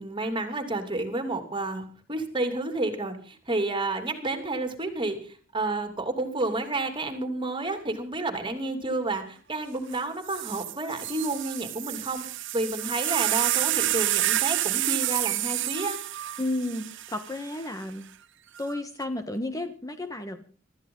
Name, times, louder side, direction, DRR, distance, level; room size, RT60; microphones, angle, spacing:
voice 1, 0.0-12.2 12.5-16.0, right 2 dB, 25° right, 7 dB, 3.0 m, -30 dB
sound 1, 9.9-10.0 10.3-17.7 18.6-19.0, right 15 dB, 65° right, 0.8 m, -29 dB
voice 2, 16.4-18.1 18.6-20.4, left 1 dB, 20° left, 7 dB, 1.3 m, -32 dB
25.0 x 13.5 x 3.9 m, 0.41 s
head